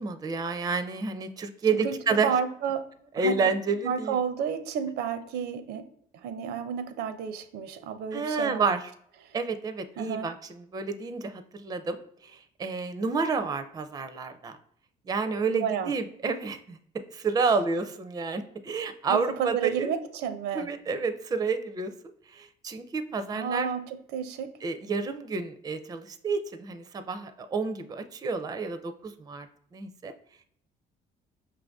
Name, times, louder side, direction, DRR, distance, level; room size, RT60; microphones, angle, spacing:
voice 1, 0.0-2.3 3.1-4.2 8.1-8.9 9.3-14.6 15.1-16.8 17.1-19.9 20.5-21.9 22.3-23.7 24.6-29.5 29.7-30.1, right 4 dB, 20° right, 9 dB, 0.4 m, -30 dB
voice 2, 2.2-2.9 3.2-3.3 3.8-5.8 6.1-8.7 9.3-9.4 10.0-10.3 15.5-15.9 19.1-20.7 23.3-23.8 24.1-24.5, right 7 dB, 80° right, 9 dB, 0.5 m, -31 dB
5.6 x 2.6 x 3.4 m, 0.64 s
cardioid pair, 110°, 17 cm